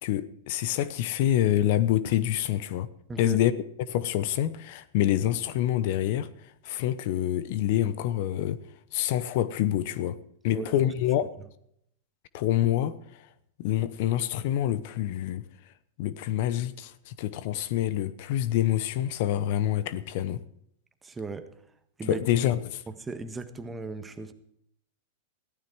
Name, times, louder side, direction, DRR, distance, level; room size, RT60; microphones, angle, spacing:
voice 1, 0.0-2.9 3.2-3.5 3.9-6.3 6.6-8.6 8.9-10.2 10.4-11.3 12.3-13.0 13.6-15.4 16.0-20.4 22.1-22.8, left 12 dB, 60° left, 0.9 m, -26 dB
voice 2, 10.5-10.9 21.0-21.5 22.0-22.2 22.9-24.3, right 3 dB, 15° right, 1.4 m, -36 dB
15.0 x 13.0 x 4.7 m
hypercardioid pair, 115°, 0 cm